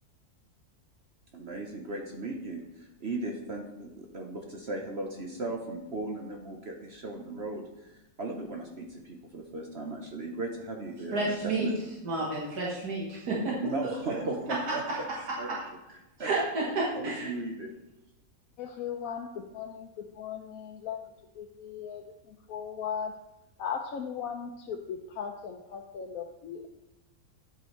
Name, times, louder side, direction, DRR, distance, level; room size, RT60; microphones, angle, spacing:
voice 1, 1.3-2.6 3.0-7.9 8.2-11.8 13.5-14.8 15.4-15.5 16.2-16.3 16.9-17.7, right 2 dB, 50° right, 1 dB, 1.1 m, -36 dB
voice 2, 11.1-14.2 14.5-15.0 15.3-15.7 16.2-17.3, right 2 dB, 85° right, -4 dB, 2.0 m, -31 dB
voice 3, 18.6-23.2 23.6-26.7, left 7 dB, 70° left, 2 dB, 1.1 m, -38 dB
9.8 x 8.3 x 3.2 m, 0.94 s
omnidirectional pair, 1.6 m